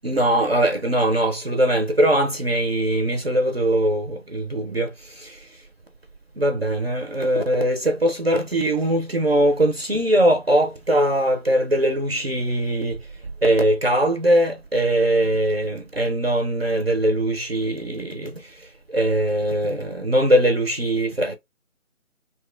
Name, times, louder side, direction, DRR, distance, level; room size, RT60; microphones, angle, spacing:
voice 1, 0.0-5.4 6.4-13.0 13.4-18.3 18.9-21.3, right 1 dB, 50° right, 0.5 m, -21 dB
2.7 x 2.2 x 2.4 m
figure-of-eight pair, 165°, 41 cm